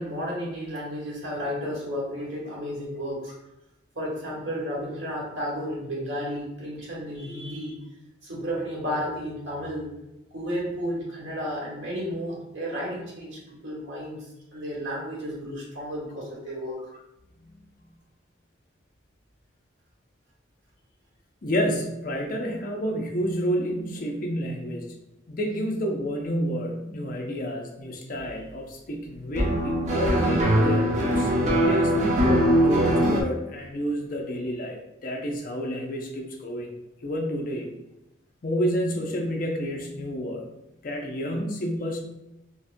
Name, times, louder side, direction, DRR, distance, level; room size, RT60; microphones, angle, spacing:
voice 1, 0.0-3.3 3.9-7.8 8.2-9.9 10.3-16.8, equal, 75° right, -4 dB, 1.2 m, -32 dB
voice 2, 21.4-24.9 25.3-31.3 31.6-36.7 37.0-37.7 38.4-40.5 40.8-42.0, equal, 45° left, 1 dB, 0.5 m, -29 dB
sound 1, 29.3-33.2, equal, 35° right, 0.5 m, -21 dB
4.0 x 2.1 x 2.5 m, 0.92 s
head